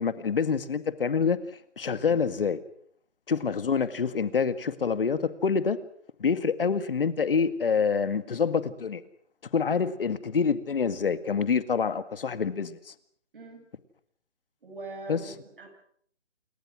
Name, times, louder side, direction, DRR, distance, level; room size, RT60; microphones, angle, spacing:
voice 1, 0.0-1.4 1.8-2.6 3.3-5.8 6.2-9.0 9.5-12.9 15.1-15.2, left 6 dB, 50° left, 12 dB, 1.9 m, -26 dB
voice 2, 14.6-15.7, right 3 dB, 50° right, 5 dB, 7.2 m, -42 dB
28.5 x 22.0 x 6.2 m, 0.63 s
hypercardioid pair, 175°, 35 cm